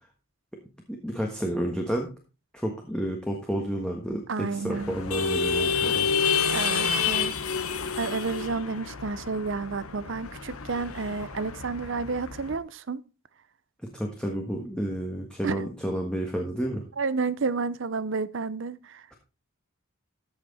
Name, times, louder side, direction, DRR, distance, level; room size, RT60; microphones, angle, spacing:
voice 1, 0.9-2.1 2.5-6.1 13.9-16.8, right 1 dB, 5° left, 1.4 m, -30 dB
voice 2, 4.3-5.0 6.5-7.3 8.0-13.0 15.4-15.7 17.0-19.0, right 4 dB, 60° right, 0.6 m, -31 dB
sound 1, 4.7-12.6, left 5 dB, 90° left, 1.1 m, -29 dB
14.0 x 5.9 x 4.1 m
head